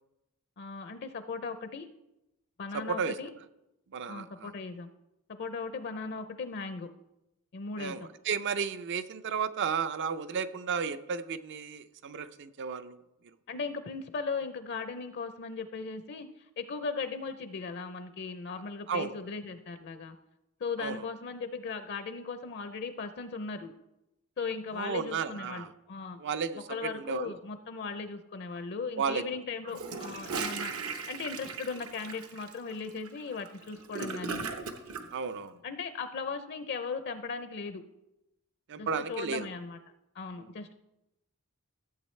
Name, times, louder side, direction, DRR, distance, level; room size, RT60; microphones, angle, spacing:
voice 1, 0.6-1.9 2.6-3.3 4.1-4.9 5.3-6.9 7.5-8.1 13.5-16.3 16.6-20.2 20.6-23.7 24.4-26.2 26.7-30.7 31.1-34.4 35.6-37.8 38.8-39.8 40.1-40.7, left 4 dB, 50° left, 10 dB, 0.5 m, -37 dB
voice 2, 2.7-3.2 3.9-4.5 7.8-13.0 18.9-19.1 20.8-21.0 24.7-25.7 26.2-27.3 29.0-29.2 35.1-35.6 38.7-39.5 40.4-40.5, right 6 dB, 55° right, 13 dB, 0.5 m, -33 dB
Gurgling / Toilet flush, 29.7-35.0, right 4 dB, 75° right, 1.0 m, -37 dB
14.0 x 7.8 x 3.2 m, 0.92 s
head